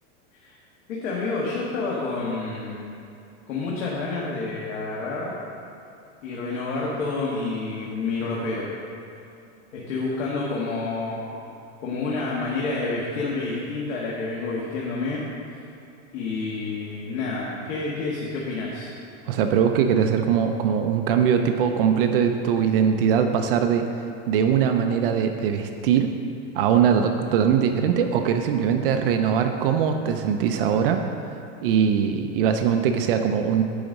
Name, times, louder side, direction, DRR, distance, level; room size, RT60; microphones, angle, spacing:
voice 1, 0.9-2.8 3.5-5.3 6.2-8.7 9.7-11.4 11.8-15.2 15.5-15.6 16.1-18.9, left 3 dB, 85° left, -4 dB, 1.5 m, -29 dB
voice 2, 19.3-23.9 24.3-26.1 26.5-31.0 31.6-33.6, right 7 dB, 50° right, 6 dB, 0.5 m, -21 dB
9.8 x 4.0 x 6.3 m, 2.5 s
supercardioid pair, 175°, 37 cm